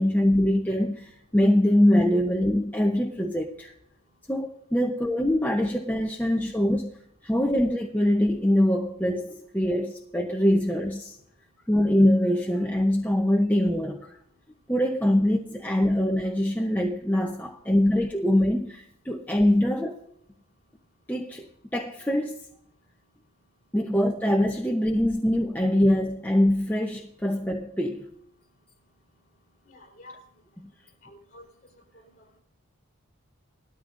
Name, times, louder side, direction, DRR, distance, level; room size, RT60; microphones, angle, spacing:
voice 1, 0.0-3.7 4.3-6.9 7.2-11.2 11.7-14.2 14.7-20.0 21.1-22.4 23.7-28.1 30.6-30.7, left 1 dB, 5° left, 1 dB, 0.7 m, -23 dB
voice 2, 29.6-30.2 31.0-32.1, left 1 dB, 40° left, 2 dB, 4.1 m, -50 dB
19.0 x 13.0 x 2.6 m, 0.72 s
head